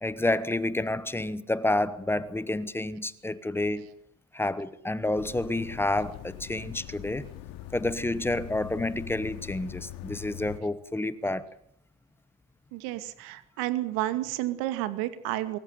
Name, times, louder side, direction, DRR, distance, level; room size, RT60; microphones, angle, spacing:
voice 1, 0.0-3.9 4.3-7.3 7.7-11.5, left 2 dB, 5° left, 0.9 m, -29 dB
sound 1, 5.2-10.6, left 13 dB, 60° left, 2.6 m, -42 dB
voice 2, 12.7-15.6, right 15 dB, 65° right, 2.4 m, -31 dB
24.0 x 14.5 x 9.3 m
cardioid pair, 150°, 39 cm